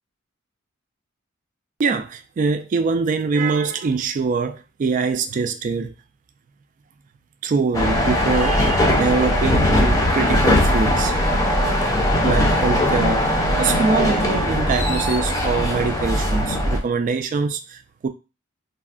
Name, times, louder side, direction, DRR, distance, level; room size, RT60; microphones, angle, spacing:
voice 1, 1.8-5.9 7.4-11.1 11.9-13.3 13.6-18.1, right 4 dB, 40° right, 0.3 m, -23 dB
sound 1, 7.7-16.8, left 1 dB, 15° left, 0.5 m, -19 dB
3.4 x 2.1 x 2.4 m
head